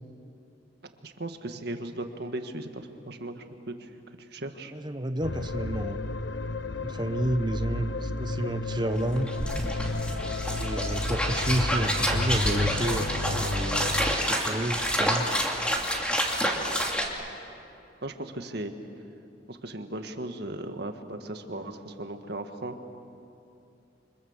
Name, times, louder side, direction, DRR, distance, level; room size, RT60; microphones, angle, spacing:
voice 1, 1.0-4.7 18.0-18.7 19.5-22.8, right 1 dB, 60° right, 6 dB, 1.7 m, -37 dB
voice 2, 4.7-6.0 6.8-9.3 10.6-13.9 14.3-15.3, right 1 dB, 25° right, 9 dB, 0.9 m, -30 dB
sound 1, 5.2-14.2, left 2 dB, 65° left, 0.8 m, -32 dB
sound 2, 8.9-9.0 9.1-17.1, equal, 5° left, 2.6 m, -28 dB
29.0 x 25.0 x 7.3 m, 2.7 s
head